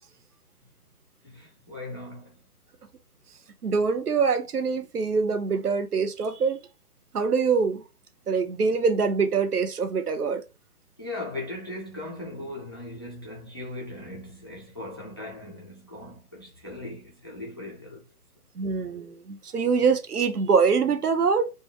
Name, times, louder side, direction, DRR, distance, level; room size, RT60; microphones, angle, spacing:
voice 1, 1.2-2.4 11.0-18.0, left 2 dB, 20° left, 0.4 m, -38 dB
voice 2, 3.6-6.6 7.1-7.8 8.3-10.4 18.6-21.5, right 5 dB, 85° right, 0.9 m, -24 dB
3.4 x 2.2 x 3.0 m
figure-of-eight pair, 140°, 45 cm